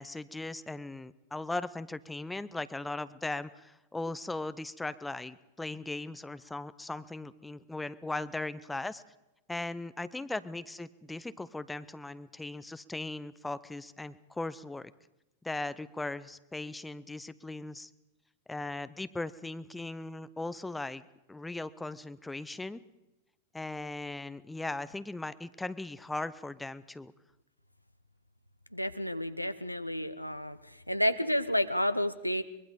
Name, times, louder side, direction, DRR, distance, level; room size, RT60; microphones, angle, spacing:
voice 1, 0.0-9.0 9.5-14.9 15.4-17.9 18.5-21.0 21.3-22.8 23.5-27.1, left 2 dB, 5° left, 15 dB, 0.7 m, -38 dB
voice 2, 28.7-30.6 30.9-32.4, equal, 90° left, 12 dB, 0.9 m, -30 dB
24.0 x 22.0 x 5.3 m, 0.97 s
figure-of-eight pair, 90°, 0 cm